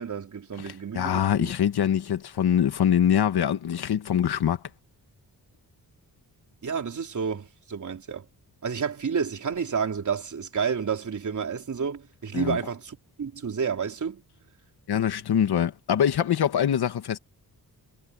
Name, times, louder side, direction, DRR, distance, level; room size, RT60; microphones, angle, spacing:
voice 1, 0.0-1.5 6.6-8.3 8.6-14.2, right 6 dB, 50° right, 3.9 m, -30 dB
voice 2, 0.9-4.6 12.3-12.6 14.9-17.2, left 9 dB, 80° left, 1.7 m, -24 dB
wide cardioid pair, 150°, 39 cm